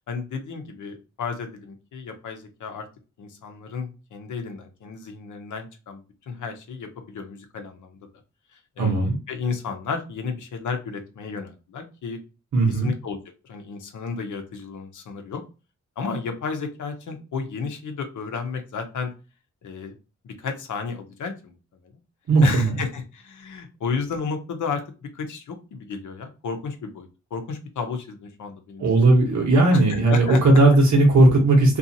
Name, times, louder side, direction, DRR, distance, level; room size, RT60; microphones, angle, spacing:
voice 1, 0.1-2.9 3.2-6.0 6.3-8.0 8.5-12.2 12.7-13.2 13.4-15.4 16.0-19.1 19.6-19.9 20.2-21.5 21.8-21.9 22.4-24.8 25.1-29.1 29.7-30.4, left 5 dB, 80° left, 5 dB, 0.7 m, -32 dB
voice 2, 8.8-9.2 12.5-12.9 22.3-22.7 28.8-31.8, right 2 dB, 70° right, 0 dB, 0.9 m, -17 dB
2.6 x 2.4 x 2.6 m, 0.32 s
cardioid pair, 75°, 30 cm